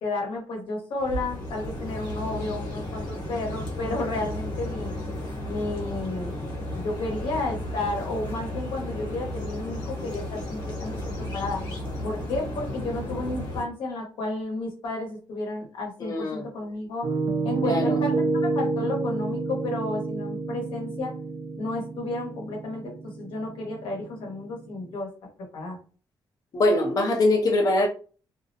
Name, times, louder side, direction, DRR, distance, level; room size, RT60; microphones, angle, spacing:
voice 1, 0.0-4.9 5.4-6.4 6.7-11.0 11.3-11.6 12.0-17.1 17.4-21.1 21.6-25.1 25.5-25.8, left 2 dB, 90° left, 0.9 m, -32 dB
sound 1, 1.0-13.6, left 1 dB, 60° left, 1.0 m, -34 dB
voice 2, 16.0-16.5 17.6-18.0 26.5-27.9, left 2 dB, 45° left, 0.5 m, -22 dB
Piano, 17.0-24.9, right 3 dB, 60° right, 0.5 m, -29 dB
2.4 x 2.0 x 2.6 m
cardioid pair, 105°, 9 cm